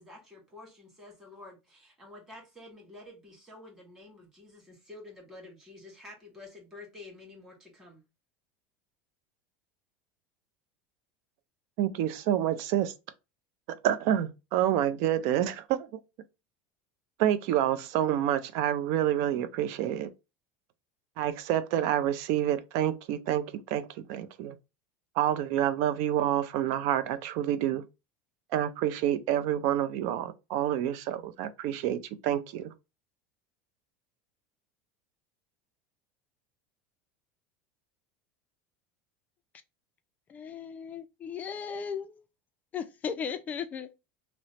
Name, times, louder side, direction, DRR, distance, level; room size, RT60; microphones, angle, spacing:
voice 1, 0.0-8.0, left 2 dB, 10° right, 1.6 m, -49 dB
voice 2, 11.8-12.9 13.8-15.9 17.2-20.1 21.2-24.6 25.2-27.8 28.5-32.7, right 11 dB, 60° right, 0.4 m, -28 dB
voice 3, 40.3-42.2 42.7-44.0, left 7 dB, 25° left, 0.3 m, -36 dB
3.0 x 2.0 x 4.1 m
supercardioid pair, 140°, 6 cm